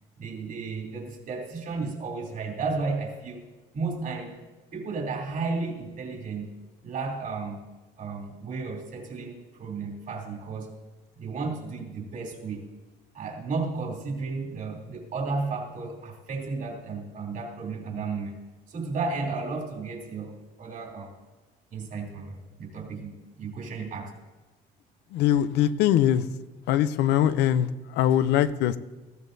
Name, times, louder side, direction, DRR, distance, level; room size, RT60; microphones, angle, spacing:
voice 1, 0.2-3.4 3.7-4.4 4.7-6.5 6.8-7.6 8.0-10.7 11.2-12.6 13.1-18.4 18.7-21.1 21.7-24.1, right 4 dB, 55° right, -1 dB, 3.1 m, -33 dB
voice 2, 25.1-26.2 26.7-28.8, left 11 dB, 85° left, 13 dB, 0.6 m, -22 dB
19.0 x 14.5 x 2.7 m, 1.2 s
cardioid pair, 110°, 17 cm